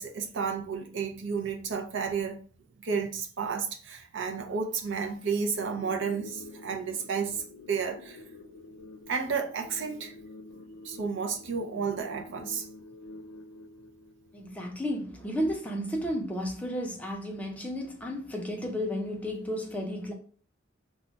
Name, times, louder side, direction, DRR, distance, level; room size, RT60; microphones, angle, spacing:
voice 1, 0.0-2.4 2.8-8.2 9.1-10.1 10.8-12.7, right 5 dB, 65° right, 0.5 m, -32 dB
sound 1, 5.6-14.6, left 2 dB, 90° left, 0.5 m, -48 dB
voice 2, 14.3-20.1, equal, 5° left, 0.5 m, -33 dB
2.3 x 2.1 x 3.9 m
head